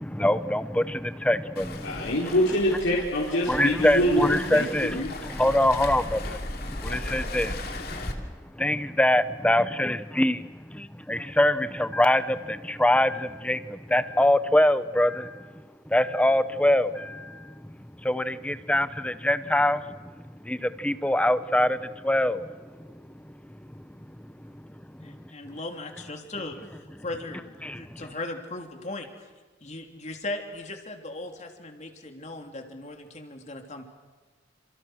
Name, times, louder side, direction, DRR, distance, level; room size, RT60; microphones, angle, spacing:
voice 1, 0.0-2.3 3.5-15.5 15.9-17.8 18.0-20.1 20.4-25.2 27.6-28.0, left 1 dB, 5° left, 12 dB, 0.7 m, -25 dB
Waves surf, 1.6-8.1, left 2 dB, 50° left, 2.9 m, -36 dB
voice 2, 1.8-4.6 4.9-5.1, equal, 80° left, -4 dB, 4.6 m, -24 dB
voice 3, 25.0-29.1 29.6-33.8, left 2 dB, 35° left, 3 dB, 3.2 m, -38 dB
29.5 x 27.5 x 6.4 m, 1.4 s
head